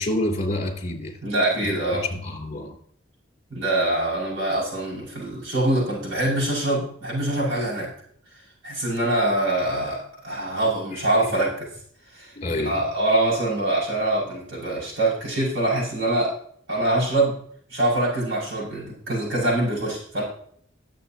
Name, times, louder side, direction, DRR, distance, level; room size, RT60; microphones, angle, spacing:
voice 1, 0.0-1.1 1.6-1.7 2.1-2.8 10.9-11.0 12.4-12.8, left 1 dB, 40° left, 2 dB, 2.8 m, -28 dB
voice 2, 1.2-2.1 3.5-7.9 8.6-11.7 12.1-16.3 16.7-17.4 17.7-20.2, right 1 dB, 70° right, -5 dB, 5.9 m, -24 dB
20.0 x 7.6 x 2.8 m, 0.63 s
head